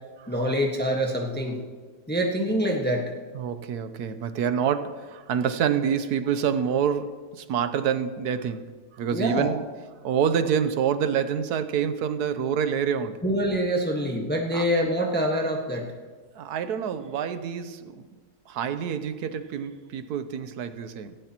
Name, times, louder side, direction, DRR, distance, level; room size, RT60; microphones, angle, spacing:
voice 1, 0.3-1.6 2.1-3.1 9.1-9.5 13.2-15.9, equal, 5° left, 1.2 m, -25 dB
voice 2, 3.3-9.6 10.0-13.2 14.5-14.7 16.3-18.1 18.5-21.2, right 7 dB, 80° right, 1.3 m, -27 dB
18.0 x 16.0 x 3.0 m
omnidirectional pair, 1.7 m